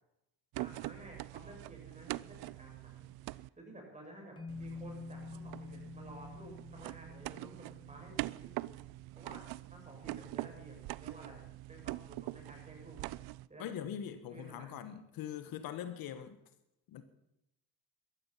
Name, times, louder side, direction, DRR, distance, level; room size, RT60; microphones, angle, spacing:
voice 1, 0.5-8.7 9.1-13.7 14.3-14.8, right 1 dB, 20° right, 0 dB, 7.2 m, -53 dB
sound 1, 0.5-3.5 4.5-13.5, right 20 dB, 85° right, 0.5 m, -44 dB
sound 2, 4.4-8.7, left 4 dB, 15° left, 1.2 m, -48 dB
voice 2, 13.6-16.4 16.9-17.0, left 9 dB, 70° left, 11 dB, 1.5 m, -42 dB
15.0 x 13.0 x 5.8 m, 0.84 s
cardioid pair, 100°, 36 cm